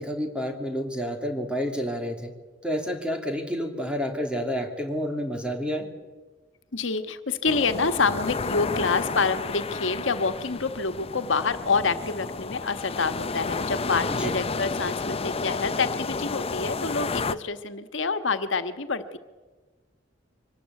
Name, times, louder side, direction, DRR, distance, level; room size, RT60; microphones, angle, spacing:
voice 1, 0.0-2.3 2.6-5.9 14.1-14.3, equal, 5° right, 3 dB, 2.9 m, -29 dB
voice 2, 6.7-19.2, left 4 dB, 90° left, 8 dB, 1.4 m, -27 dB
sound 1, 7.4-17.3, left 4 dB, 30° left, 0.6 m, -31 dB
25.0 x 19.0 x 8.3 m, 1.3 s
head